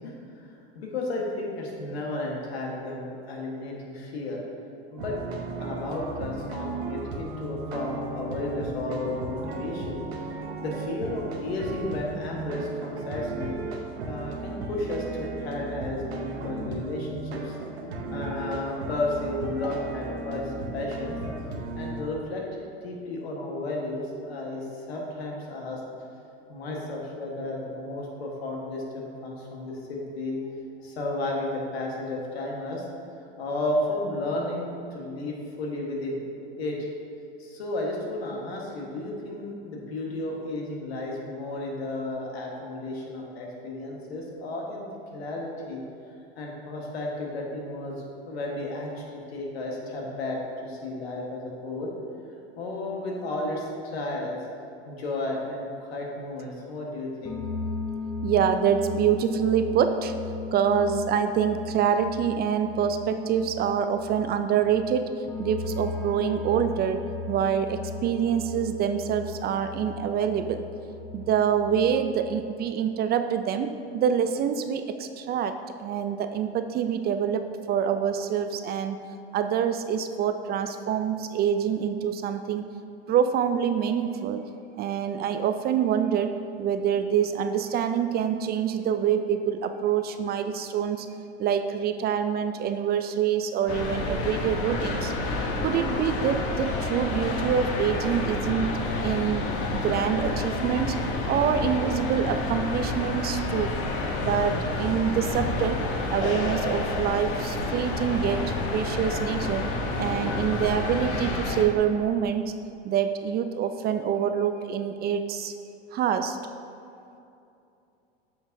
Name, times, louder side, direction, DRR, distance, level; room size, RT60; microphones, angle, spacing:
voice 1, 0.0-4.4 4.9-5.2 5.6-13.6 14.0-17.5 18.1-21.2 21.8-22.4 22.8-25.8 26.5-30.4 30.8-32.8 33.4-36.2 36.6-36.9 37.4-45.8 46.3-47.9 48.2-51.9 52.6-54.4 54.8-57.4, left 2 dB, 80° left, -1 dB, 1.4 m, -33 dB
sound 1, 5.0-22.0, right 3 dB, 90° right, 0.9 m, -35 dB
sound 2, 57.2-72.4, left 4 dB, 15° left, 1.0 m, -36 dB
voice 2, 58.2-60.1 60.5-70.7 71.1-79.0 79.3-82.6 83.1-84.4 84.8-91.1 91.4-95.1 95.6-98.7 99.0-103.7 104.2-105.8 106.1-112.5 112.8-115.5 115.9-116.4, right 8 dB, 35° right, 9 dB, 0.4 m, -26 dB
sound 3, 93.7-111.6, left 2 dB, 50° left, 1.1 m, -29 dB
8.5 x 6.0 x 2.7 m, 2.7 s
hypercardioid pair, 90°, 31 cm